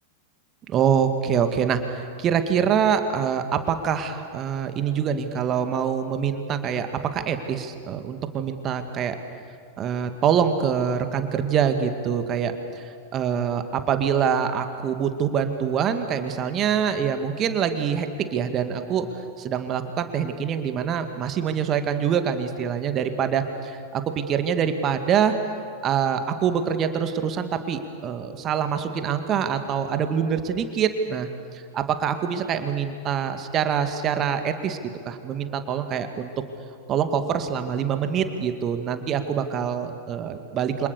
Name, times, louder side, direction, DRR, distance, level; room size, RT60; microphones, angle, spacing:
voice 1, 0.7-9.2 9.8-12.5 13.1-19.1 19.4-25.4 25.8-34.8 35.1-36.3 36.9-40.9, right 7 dB, 30° right, 8 dB, 2.3 m, -25 dB
29.0 x 26.5 x 7.0 m, 2.3 s
figure-of-eight pair, 90°, 0 cm